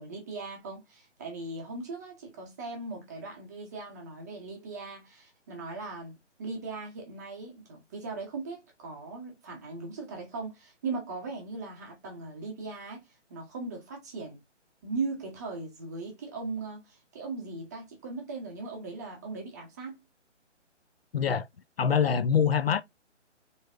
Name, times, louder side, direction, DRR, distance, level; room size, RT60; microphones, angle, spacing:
voice 1, 0.0-13.0 13.3-14.4 14.8-20.0, right 3 dB, 15° right, 0.7 m, -39 dB
voice 2, 21.1-21.5 21.8-22.8, left 7 dB, 55° left, 0.5 m, -24 dB
4.2 x 3.3 x 2.4 m
figure-of-eight pair, 145°, 37 cm